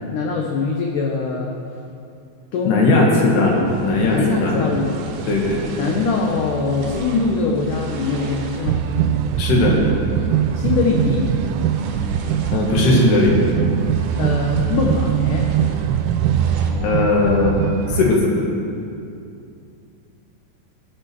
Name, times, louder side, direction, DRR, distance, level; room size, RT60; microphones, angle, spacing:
voice 1, 0.1-1.5 2.5-3.3 4.1-4.9 5.8-8.8 10.5-11.3 14.1-15.5, left 4 dB, 90° left, 0 dB, 1.8 m, -22 dB
voice 2, 2.7-4.6 5.3-5.8 9.4-9.8 12.5-13.4 16.8-17.6 17.9-18.4, left 2 dB, 70° left, -2 dB, 3.7 m, -18 dB
sound 1, 3.5-18.2, right 9 dB, 85° right, 2.7 m, -23 dB
sound 2, 3.6-16.7, right 5 dB, 65° right, 2.1 m, -34 dB
19.5 x 8.2 x 4.6 m, 2.6 s
omnidirectional pair, 5.0 m